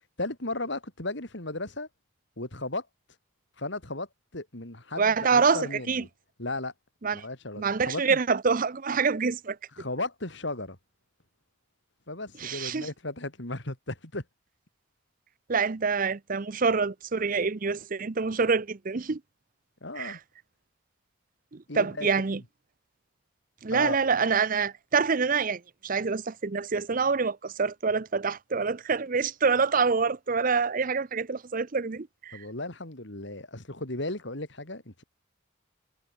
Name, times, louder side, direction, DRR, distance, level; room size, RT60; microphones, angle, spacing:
voice 1, 0.2-1.9 2.4-2.9 3.6-4.1 4.3-6.1 6.4-6.7 7.1-8.2 9.8-10.8 12.1-14.2 19.8-20.2 21.7-22.1 23.7-24.0 32.3-35.0, left 2 dB, 60° left, 3.5 m, -35 dB
voice 2, 5.0-6.0 7.0-7.2 7.6-9.6 12.4-12.9 15.5-19.2 20.0-20.2 21.5-22.4 23.6-32.4, right 5 dB, 45° right, 0.6 m, -26 dB
head